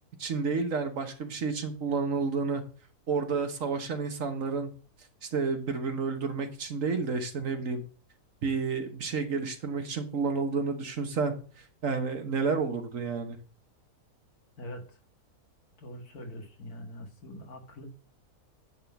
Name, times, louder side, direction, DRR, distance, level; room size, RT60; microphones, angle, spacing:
voice 1, 0.2-2.6 3.1-4.7 5.3-7.8 8.4-11.3 11.8-13.4, right 4 dB, 60° right, 6 dB, 1.6 m, -30 dB
voice 2, 14.6-15.0 15.8-17.9, left 1 dB, 80° left, 3 dB, 2.3 m, -43 dB
10.5 x 3.8 x 6.9 m, 0.39 s
omnidirectional pair, 1.6 m